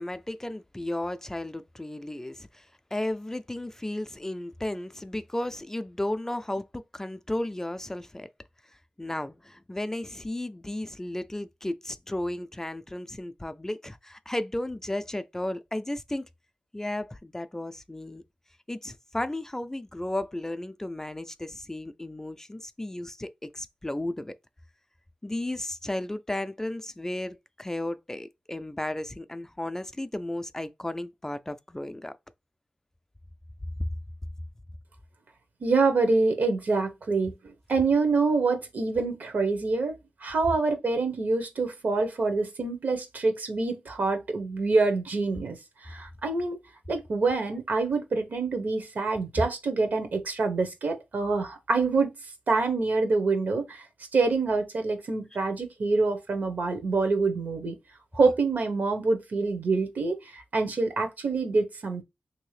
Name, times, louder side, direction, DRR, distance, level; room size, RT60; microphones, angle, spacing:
voice 1, 0.0-8.3 9.0-16.3 16.7-18.2 18.7-24.4 25.2-32.2 33.8-33.9 49.4-49.5, left 1 dB, 15° left, 0.3 m, -34 dB
voice 2, 35.6-45.6 45.8-46.6 46.9-52.1 52.5-53.8 54.1-57.8 58.1-62.0, right 3 dB, 75° right, 0.9 m, -26 dB
3.1 x 2.7 x 3.2 m
cardioid pair, 60°, 3 cm